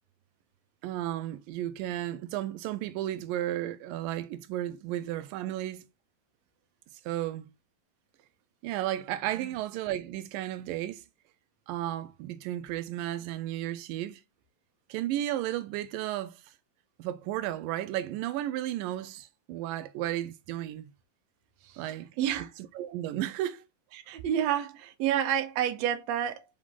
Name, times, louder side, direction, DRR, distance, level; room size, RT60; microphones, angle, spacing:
voice 1, 0.8-5.9 7.1-7.5 8.6-11.0 11.7-14.2 14.9-16.5 17.0-20.9 21.8-22.1 22.4-22.5 22.8-23.6, right 13 dB, 85° right, 2.3 m, -33 dB
voice 2, 21.7-22.5 24.1-26.4, right 10 dB, 70° right, 1.8 m, -29 dB
5.3 x 5.1 x 3.7 m
omnidirectional pair, 3.9 m